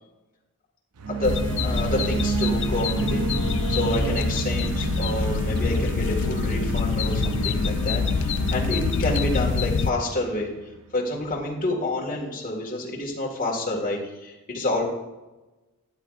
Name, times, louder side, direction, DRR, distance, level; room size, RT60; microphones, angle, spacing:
sound 1, 1.0-11.0, right 4 dB, 85° right, 0.6 m, -30 dB
voice 1, 1.1-3.2 3.7-10.5 10.9-14.8, left 1 dB, 35° left, -2 dB, 1.8 m, -28 dB
sound 2, 1.2-9.9, left 5 dB, 55° left, 0.4 m, -26 dB
13.0 x 8.3 x 2.5 m, 1.1 s
head